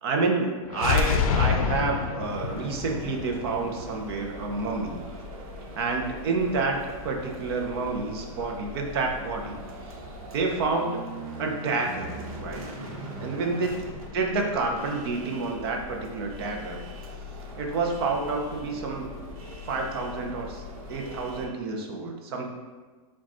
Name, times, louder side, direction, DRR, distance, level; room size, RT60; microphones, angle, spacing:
voice 1, 0.0-5.0 5.8-10.0 10.3-11.1 11.4-12.1 12.4-12.8 13.2-13.8 14.1-16.8 17.6-19.1 19.6-20.6 20.9-22.5, right 3 dB, 45° right, 2 dB, 0.6 m, -29 dB
sound 1, 0.7-4.6, left 6 dB, 80° left, 0.5 m, -27 dB
sound 2, 2.2-21.5, equal, 75° right, 1.0 m, -41 dB
4.9 x 2.3 x 4.2 m, 1.4 s
supercardioid pair, 175°, 18 cm